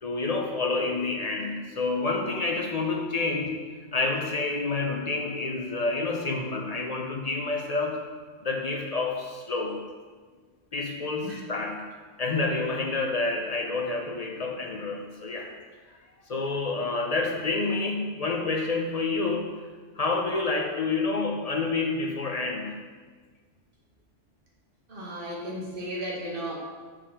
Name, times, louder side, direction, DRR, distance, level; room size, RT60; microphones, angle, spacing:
voice 1, 0.0-3.6 3.9-8.0 8.4-9.8 10.7-11.8 12.2-15.5 16.3-19.5 20.0-22.8, left 3 dB, 55° left, 1 dB, 0.4 m, -28 dB
voice 2, 24.9-26.6, equal, 45° right, -4 dB, 1.4 m, -34 dB
4.9 x 3.6 x 5.5 m, 1.5 s
omnidirectional pair, 1.3 m